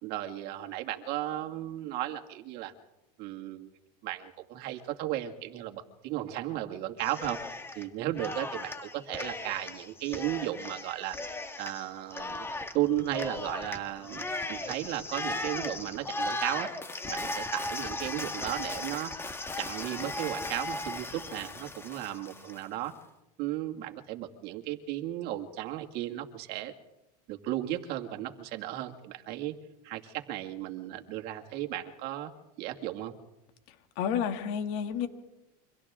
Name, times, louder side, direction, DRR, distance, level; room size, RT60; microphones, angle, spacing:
voice 1, 0.0-2.7 3.2-3.7 4.0-7.4 7.7-11.2 11.6-12.5 12.7-16.7 17.1-19.1 19.6-22.9 23.4-26.7 27.3-29.6 29.8-32.3 32.6-33.1, right 14 dB, 55° right, 4 dB, 2.3 m, -35 dB
Cheering, 7.0-7.9 8.2-22.6, left 2 dB, 10° left, 1.7 m, -37 dB
voice 2, 34.0-35.1, left 8 dB, 65° left, 6 dB, 2.5 m, -30 dB
30.0 x 25.0 x 3.8 m, 0.93 s
supercardioid pair, 125°, 20 cm